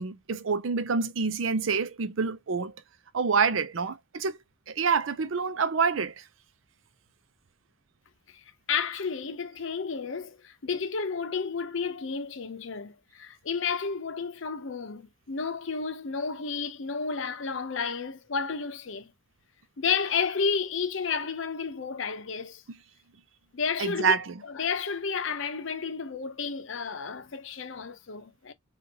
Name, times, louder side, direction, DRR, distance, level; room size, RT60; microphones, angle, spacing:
voice 1, 0.0-2.7 3.1-4.4 4.7-6.1 23.8-24.3, right 5 dB, 70° right, 0.6 m, -27 dB
voice 2, 8.3-19.1 19.8-22.6 23.5-24.1 24.5-28.5, left 5 dB, 70° left, 0.7 m, -31 dB
4.3 x 2.4 x 2.8 m
head